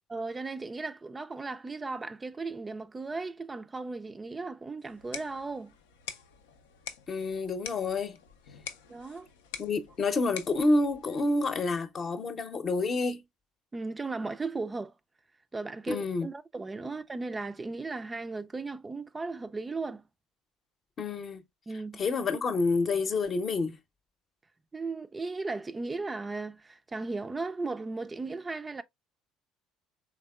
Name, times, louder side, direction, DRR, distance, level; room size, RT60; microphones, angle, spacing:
voice 1, 0.1-5.7 8.9-9.3 13.7-14.9 15.5-20.0 21.7-22.0 24.7-28.8, right 3 dB, 25° right, 0.3 m, -36 dB
sound 1, 4.8-11.8, left 7 dB, 85° left, 0.4 m, -46 dB
voice 2, 7.1-8.2 9.6-13.2 15.9-16.3 21.0-21.4 22.0-23.8, left 3 dB, 45° left, 0.7 m, -28 dB
3.5 x 3.4 x 2.3 m
hypercardioid pair, 65°, 0 cm